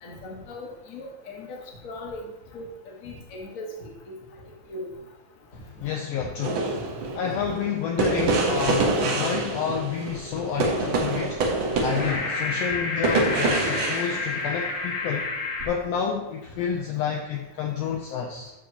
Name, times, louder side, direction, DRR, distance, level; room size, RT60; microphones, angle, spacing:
voice 1, 0.0-1.6 1.8-2.2 2.5-2.7 3.0-3.9 4.7-4.9, left 2 dB, 40° left, -2 dB, 1.2 m, -38 dB
voice 2, 5.5-6.7 7.1-11.4 11.8-15.3 15.6-18.5, left 7 dB, 80° left, 2 dB, 1.5 m, -29 dB
sound 1, 6.4-14.9 15.6-15.8, right 3 dB, 65° right, 1.2 m, -26 dB
sound 2, 11.7-15.7, left 3 dB, 65° left, 1.8 m, -30 dB
12.5 x 4.9 x 2.8 m, 0.99 s
omnidirectional pair, 3.5 m